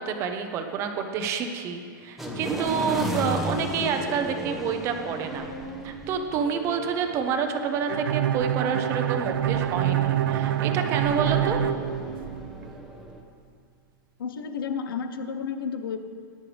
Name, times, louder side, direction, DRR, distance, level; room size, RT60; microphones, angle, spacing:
voice 1, 0.0-5.5 5.8-11.6, right 6 dB, 25° right, 6 dB, 0.9 m, -28 dB
sound 1, 2.2-13.2, equal, ahead, 1.1 m, -35 dB
Bowed string instrument, 7.9-12.7, right 11 dB, 85° right, 0.5 m, -26 dB
voice 2, 14.2-16.0, left 6 dB, 85° left, 8 dB, 1.1 m, -31 dB
20.0 x 10.5 x 3.5 m, 2.2 s
supercardioid pair, 165°, 11 cm